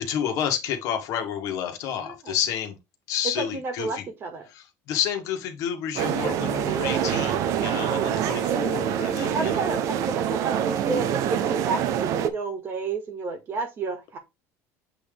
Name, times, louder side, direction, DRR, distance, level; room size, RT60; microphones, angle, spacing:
voice 1, 0.0-2.8 3.1-4.0 4.5-9.6, left 9 dB, 60° left, 1.6 m, -30 dB
voice 2, 1.9-2.4 3.4-4.5 7.9-8.1 9.2-14.2, right 4 dB, 35° right, 1.9 m, -31 dB
sound 1, 6.0-12.3, right 9 dB, 55° right, 0.8 m, -25 dB
7.7 x 3.8 x 3.4 m
cardioid pair, 145°, 7 cm